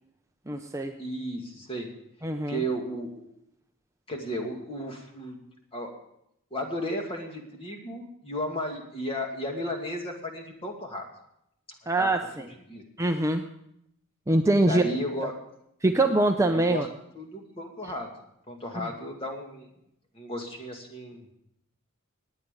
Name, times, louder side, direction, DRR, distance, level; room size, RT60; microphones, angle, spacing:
voice 1, 0.5-1.0 2.2-2.6 11.9-12.4 13.0-13.4 14.3-14.8 15.8-16.9 18.8-18.9, right 2 dB, 15° right, 5 dB, 0.6 m, -24 dB
voice 2, 1.0-1.9 2.5-3.3 4.1-5.4 5.7-5.9 6.5-11.1 12.0-12.1 12.7-12.8 14.7-15.3 16.5-16.8 17.1-18.1 18.5-19.7 20.1-21.3, equal, 25° left, 2 dB, 2.3 m, -34 dB
19.0 x 9.4 x 5.3 m, 0.77 s
head